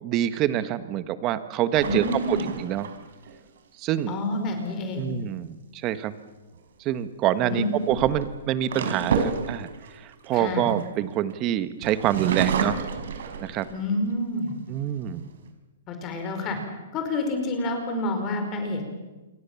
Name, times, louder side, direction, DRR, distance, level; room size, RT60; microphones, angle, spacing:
voice 1, 0.0-2.9 3.8-4.2 5.0-6.1 6.8-9.7 9.9-12.8 13.4-13.7 14.7-15.2, right 11 dB, 25° right, 12 dB, 1.5 m, -26 dB
sound 1, 1.7-3.3 6.3-6.6 7.6-11.3 11.8-14.0 14.5-14.6 14.9-15.5, right 6 dB, 70° right, 4.6 m, -30 dB
voice 2, 1.8-2.5 4.1-5.1 7.4-7.7 10.3-10.7 13.7-14.6 15.9-16.6 16.9-18.9, left 2 dB, 25° left, 5 dB, 4.7 m, -28 dB
28.0 x 22.5 x 7.2 m, 1.1 s
hypercardioid pair, 155°, 0 cm